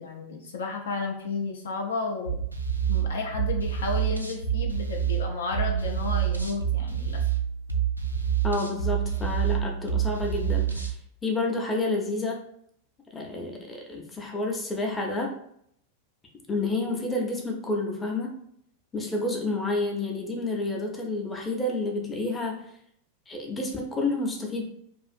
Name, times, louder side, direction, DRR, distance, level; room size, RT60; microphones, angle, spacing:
voice 1, 0.0-2.4 2.9-7.2, left 4 dB, 65° left, 1 dB, 0.3 m, -32 dB
sound 1, 2.2-11.0, right 9 dB, 85° right, 0.3 m, -27 dB
voice 2, 8.4-11.0 11.2-12.4 13.1-15.3 16.5-18.3 18.9-22.6 23.3-24.6, left 2 dB, 15° left, 0 dB, 0.6 m, -29 dB
2.4 x 2.4 x 2.4 m, 0.69 s
figure-of-eight pair, 90°, 0 cm